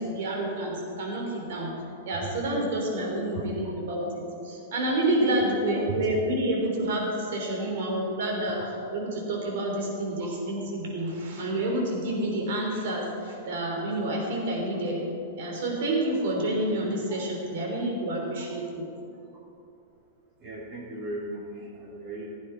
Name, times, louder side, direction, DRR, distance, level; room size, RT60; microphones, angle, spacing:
voice 1, 0.0-1.7 2.1-15.0 15.4-18.8, right 1 dB, 65° right, -1 dB, 3.4 m, -29 dB
voice 2, 20.4-22.3, right 2 dB, 40° right, -8 dB, 3.3 m, -37 dB
15.5 x 9.1 x 4.7 m, 2.7 s
hypercardioid pair, 105°, 0 cm